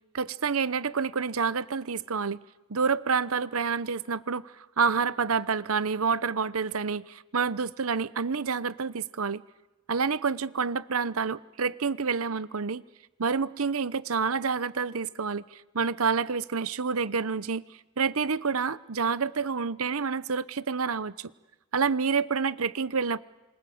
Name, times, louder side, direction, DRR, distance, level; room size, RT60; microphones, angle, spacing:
voice 1, 0.1-2.4 2.7-9.4 9.9-12.8 13.2-17.6 18.0-21.3 21.7-23.2, right 5 dB, 90° right, 17 dB, 0.9 m, -28 dB
27.5 x 27.0 x 7.8 m, 1.0 s
head